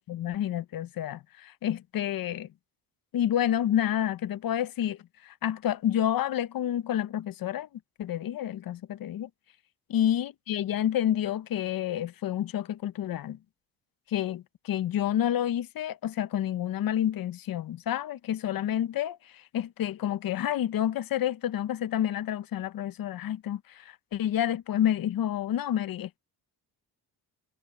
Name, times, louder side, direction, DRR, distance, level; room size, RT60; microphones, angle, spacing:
voice 1, 0.1-2.5 3.1-5.0 5.2-7.7 8.0-9.3 9.9-13.4 14.1-19.2 19.5-23.8 24.1-26.2, left 11 dB, 60° left, 0.8 m, -29 dB
cardioid pair, 125°, 39 cm